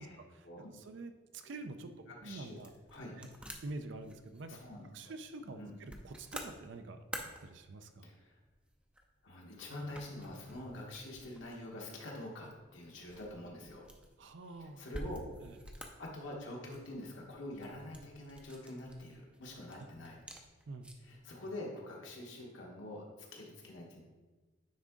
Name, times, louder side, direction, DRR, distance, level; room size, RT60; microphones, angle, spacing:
voice 1, 0.0-0.5 0.9-2.7 3.2-3.3 3.6-4.6 4.9-7.0 7.4-8.1 14.2-14.9 15.4-15.6 20.7-20.9, right 2 dB, 65° right, 8 dB, 0.5 m, -46 dB
sound 1, 2.0-21.2, right 1 dB, 5° right, 0.5 m, -52 dB
voice 2, 2.1-3.2 4.5-5.1 5.4-5.7 8.0-8.4 9.2-13.8 14.6-15.2 15.8-20.2 21.0-24.0, left 1 dB, 70° left, -2 dB, 1.3 m, -46 dB
9.4 x 3.6 x 3.7 m, 1.3 s
head